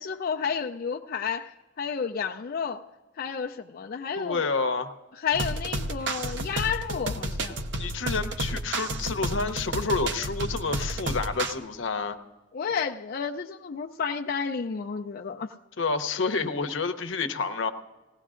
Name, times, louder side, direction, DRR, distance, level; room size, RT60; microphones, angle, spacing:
voice 1, 0.0-2.8 3.2-4.5 5.2-7.6 12.5-15.5, left 6 dB, 50° left, 0.4 m, -31 dB
voice 2, 4.2-4.9 7.8-12.2 15.8-17.7, left 4 dB, 90° left, 0.8 m, -29 dB
sound 1, 5.3-11.5, right 1 dB, 70° right, 0.8 m, -31 dB
19.5 x 16.5 x 2.5 m
head